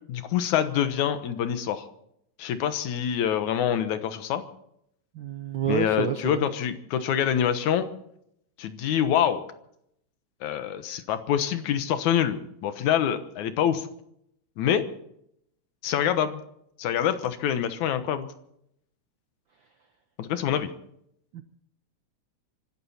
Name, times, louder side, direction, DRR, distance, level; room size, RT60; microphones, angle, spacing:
voice 1, 0.1-1.8 2.4-4.4 5.7-7.9 8.6-9.4 10.4-13.9 14.6-14.9 15.8-16.4 16.8-18.3 20.2-20.7, left 9 dB, 85° left, 10 dB, 2.6 m, -26 dB
voice 2, 5.1-6.4 21.3-21.4, right 9 dB, 70° right, 8 dB, 1.1 m, -29 dB
25.5 x 13.0 x 4.3 m, 0.74 s
omnidirectional pair, 3.3 m